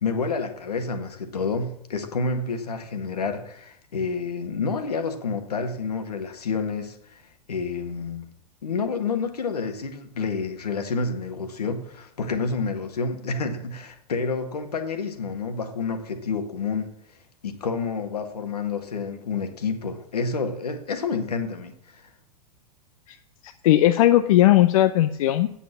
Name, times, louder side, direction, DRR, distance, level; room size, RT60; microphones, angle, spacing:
voice 1, 0.0-7.2 7.5-8.3 8.6-16.9 17.4-22.0, left 4 dB, 80° left, 7 dB, 1.7 m, -29 dB
voice 2, 23.4-25.5, left 14 dB, 60° left, 9 dB, 0.6 m, -18 dB
8.1 x 7.2 x 7.6 m, 0.72 s
figure-of-eight pair, 100°, 20 cm